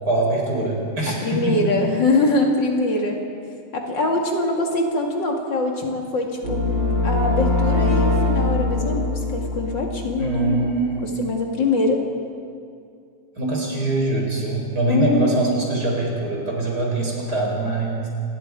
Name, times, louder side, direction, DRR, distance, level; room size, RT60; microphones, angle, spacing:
voice 1, 0.0-1.7 10.2-11.3 13.4-18.1, right 2 dB, 60° right, -1 dB, 5.4 m, -23 dB
voice 2, 1.1-3.2 3.7-6.6 7.0-10.7 11.0-12.0 14.9-15.6, left 2 dB, 80° left, 1 dB, 3.1 m, -23 dB
sound 1, 6.4-10.4, left 2 dB, 85° right, 5.0 m, -22 dB
27.0 x 21.0 x 4.8 m, 2.4 s
omnidirectional pair, 1.9 m